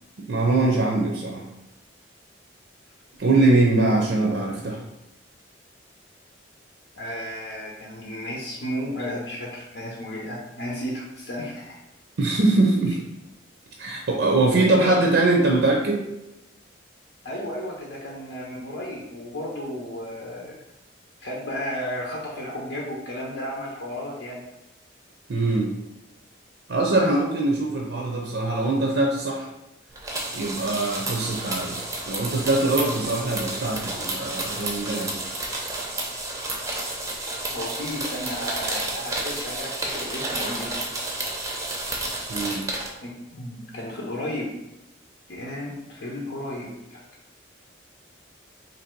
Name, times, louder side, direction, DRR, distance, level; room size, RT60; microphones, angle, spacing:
voice 1, 0.3-1.4 3.2-4.8 12.2-13.0 13.8-16.0 25.3-25.7 26.7-29.5 30.3-35.2 42.3-42.7, right 2 dB, 65° right, 0 dB, 0.5 m, -22 dB
voice 2, 7.0-11.8 14.6-15.2 17.2-20.6 21.2-24.4 37.5-40.7 43.0-44.5 45.3-47.0, left 1 dB, 70° left, -3 dB, 0.7 m, -33 dB
sound 1, 30.0-42.9, right 2 dB, 15° right, 0.5 m, -31 dB
3.1 x 2.6 x 4.4 m, 0.93 s
head